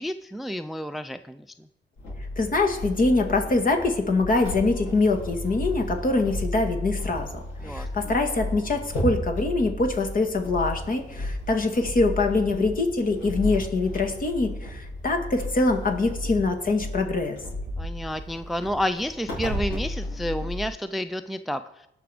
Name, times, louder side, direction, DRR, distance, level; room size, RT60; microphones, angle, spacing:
voice 1, 0.0-1.5 7.6-8.1 17.8-21.9, equal, ahead, 11 dB, 0.4 m, -30 dB
sound 1, 2.0-20.7, left 1 dB, 75° left, 4.5 m, -33 dB
voice 2, 2.4-7.3 7.6-17.4, left 3 dB, 45° left, 5 dB, 2.1 m, -24 dB
18.0 x 6.1 x 5.0 m, 0.85 s
cardioid pair, 90°, 20 cm